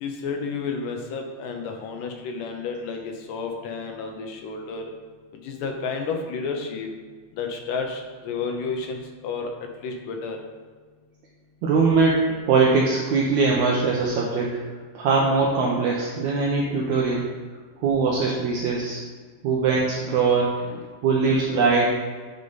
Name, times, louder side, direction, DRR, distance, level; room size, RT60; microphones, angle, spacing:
voice 1, 0.0-4.8 5.4-6.9 7.4-9.5 9.8-10.4 20.6-20.8, left 4 dB, 75° left, 3 dB, 2.2 m, -31 dB
voice 2, 11.6-14.5 14.9-17.2 17.8-19.0 19.4-20.5 21.0-21.9, right 4 dB, 80° right, -3 dB, 1.7 m, -21 dB
8.3 x 5.3 x 4.0 m, 1.5 s
omnidirectional pair, 4.1 m